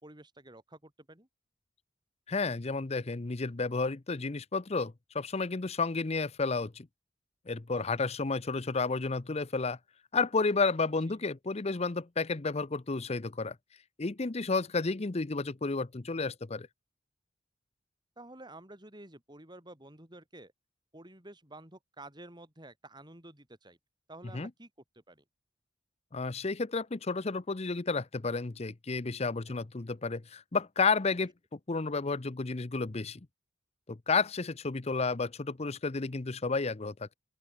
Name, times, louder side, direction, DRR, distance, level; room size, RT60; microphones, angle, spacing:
voice 1, 0.0-1.3 7.7-7.8 11.1-11.2 18.2-20.5 20.9-23.8 24.1-25.2 29.5-29.7, right 2 dB, 25° right, 6.0 m, -51 dB
voice 2, 2.3-6.9 7.5-9.8 10.1-13.6 14.0-16.7 24.3-24.5 26.1-33.3 33.9-37.1, left 4 dB, 35° left, 0.7 m, -31 dB
open air
head